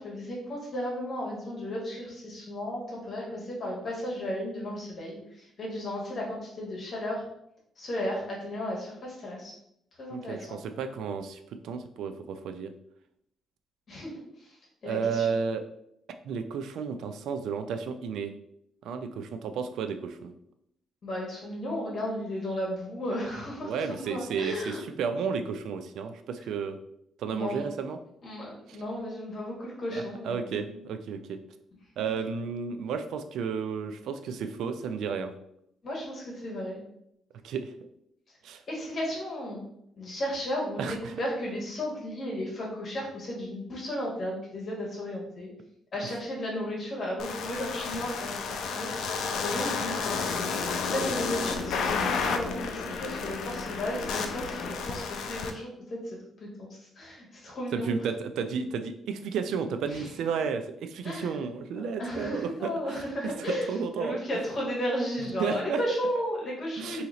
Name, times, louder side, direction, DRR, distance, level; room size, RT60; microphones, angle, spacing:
voice 1, 0.0-7.2 7.8-9.5 10.0-10.6 13.9-14.1 14.4-14.5 14.8-15.3 21.0-24.8 27.3-27.6 28.2-30.5 35.8-36.8 38.7-39.6 40.0-45.5 45.9-50.3 50.7-56.0 56.4-56.7 57.0-57.9 59.8-60.1 61.0-61.4 61.8-63.7 64.0-67.0, equal, 50° left, -3 dB, 1.2 m, -34 dB
voice 2, 10.1-12.7 14.9-15.6 16.2-18.3 18.8-20.3 23.6-26.8 27.2-28.0 28.7-28.8 29.9-31.4 32.0-35.3 37.4-37.7 38.4-38.6 40.8-41.2 57.7-64.2 65.2-65.8 66.8-67.0, right 6 dB, 80° right, 8 dB, 0.3 m, -32 dB
sound 1, 47.2-55.5, left 5 dB, 80° left, 0.4 m, -31 dB
2.8 x 2.8 x 3.9 m, 0.76 s
cardioid pair, 90°, 0 cm